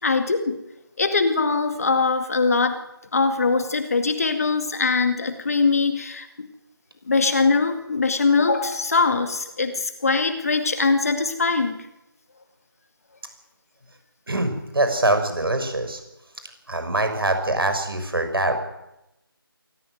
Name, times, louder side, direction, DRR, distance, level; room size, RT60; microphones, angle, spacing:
voice 1, 0.0-0.6 1.0-2.8 3.1-6.5 7.1-11.8, left 4 dB, 40° left, 7 dB, 2.2 m, -22 dB
voice 2, 14.3-16.0 16.7-18.6, right 2 dB, 70° right, 7 dB, 6.3 m, -23 dB
23.5 x 14.5 x 9.4 m, 0.91 s
figure-of-eight pair, 170°, 13 cm